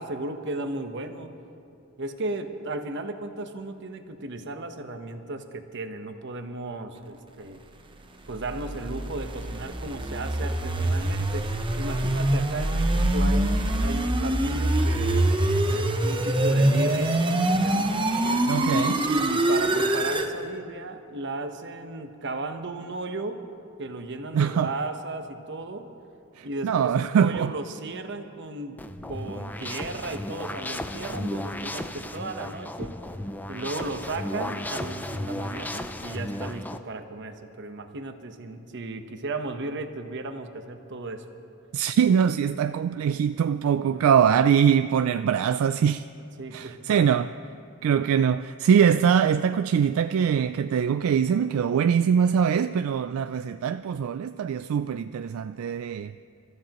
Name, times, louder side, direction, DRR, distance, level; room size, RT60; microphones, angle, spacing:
voice 1, 0.0-1.3 2.0-7.6 8.3-11.5 11.8-15.3 15.7-17.2 17.5-18.0 18.7-23.4 23.8-25.9 26.4-28.8 29.1-33.0 33.5-41.3 43.9-44.0 46.4-47.2, right 2 dB, 55° right, 1.0 m, -35 dB
sound 1, 8.1-20.3, right 1 dB, 25° right, 0.8 m, -24 dB
voice 2, 18.5-19.0 24.3-24.7 26.4-27.5 41.7-46.1 46.5-47.3 47.8-56.1, right 7 dB, 80° right, 0.3 m, -23 dB
sound 2, 28.8-36.8, left 1 dB, 10° left, 0.5 m, -34 dB
29.0 x 14.0 x 3.0 m
head